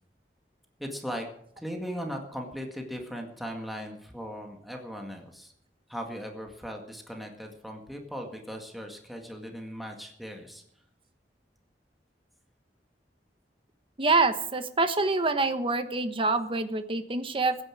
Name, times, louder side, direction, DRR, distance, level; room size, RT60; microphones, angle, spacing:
voice 1, 0.8-1.3 1.6-5.5 5.9-10.6, equal, ahead, 2 dB, 1.9 m, -38 dB
voice 2, 14.0-17.6, right 3 dB, 30° right, 9 dB, 1.2 m, -26 dB
15.5 x 9.6 x 7.5 m, 0.67 s
head